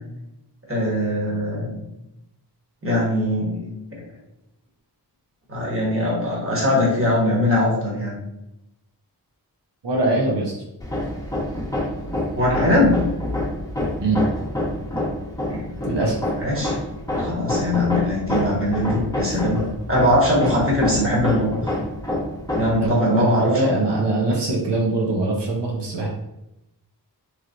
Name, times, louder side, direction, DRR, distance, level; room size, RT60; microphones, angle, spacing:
voice 1, 0.7-1.7 2.8-3.7 5.5-8.1 12.4-13.0 15.5-15.6 16.4-16.7 17.1-19.6 19.9-21.7 22.5-23.7, left 1 dB, 30° right, -4 dB, 1.2 m, -21 dB
voice 2, 9.8-10.6 14.0-14.2 15.9-16.2 22.8-26.1, right 2 dB, 85° right, -2 dB, 0.7 m, -22 dB
Hammer, 10.8-22.9, left 1 dB, 10° left, 0.7 m, -27 dB
3.1 x 3.0 x 2.5 m, 0.89 s
wide cardioid pair, 55°, 41 cm